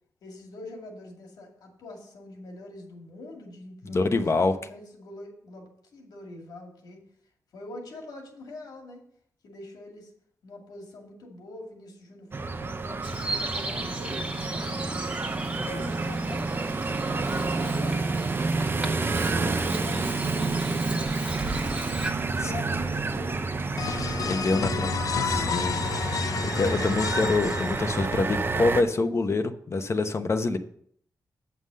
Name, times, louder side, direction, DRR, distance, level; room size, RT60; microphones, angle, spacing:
voice 1, 0.2-7.0 7.5-9.0 9.4-10.1 10.4-14.8 15.6-18.3 18.7-20.9 22.3-24.9, left 2 dB, 85° left, 1 dB, 2.3 m, -44 dB
voice 2, 3.9-4.5 22.4-22.5 24.2-24.9 25.2-25.8 26.2-30.6, left 3 dB, 45° left, 8 dB, 0.8 m, -26 dB
sound 1, 12.3-28.8, right 3 dB, 35° right, 0.6 m, -29 dB
Bird vocalization bird call bird song, 13.0-22.1, right 1 dB, 15° right, 1.6 m, -37 dB
sound 2, 23.8-28.4, left 6 dB, 65° left, 0.5 m, -30 dB
8.0 x 5.7 x 6.3 m, 0.64 s
cardioid pair, 90°, 7 cm